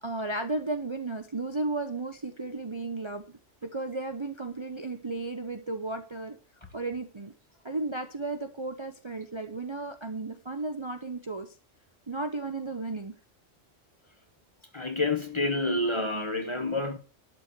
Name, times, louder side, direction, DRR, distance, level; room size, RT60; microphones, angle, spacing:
voice 1, 0.0-6.4 6.7-7.3 7.6-11.5 12.1-13.1, right 2 dB, 25° right, 0.8 m, -34 dB
voice 2, 14.7-17.0, left 2 dB, 25° left, 1.2 m, -28 dB
12.0 x 4.5 x 8.0 m
omnidirectional pair, 1.2 m